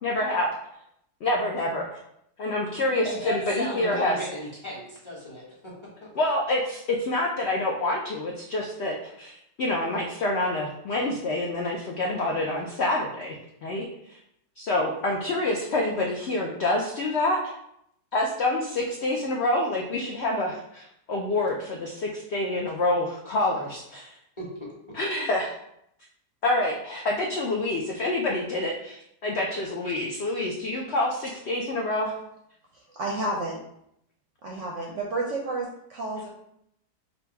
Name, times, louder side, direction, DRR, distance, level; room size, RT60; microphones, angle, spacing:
voice 1, 0.0-0.5 1.2-2.0 2.4-4.2 6.2-13.4 13.6-14.2 14.6-17.5 18.1-24.1 24.9-25.5 26.4-32.1, left 2 dB, 75° left, -1 dB, 0.6 m, -27 dB
voice 2, 3.0-5.7 6.0-6.1 24.4-25.0, left 1 dB, 20° left, -6 dB, 0.9 m, -34 dB
voice 3, 32.7-33.6 34.4-36.3, right 2 dB, 65° right, -2 dB, 0.8 m, -31 dB
3.9 x 2.3 x 4.5 m, 0.75 s
omnidirectional pair, 1.8 m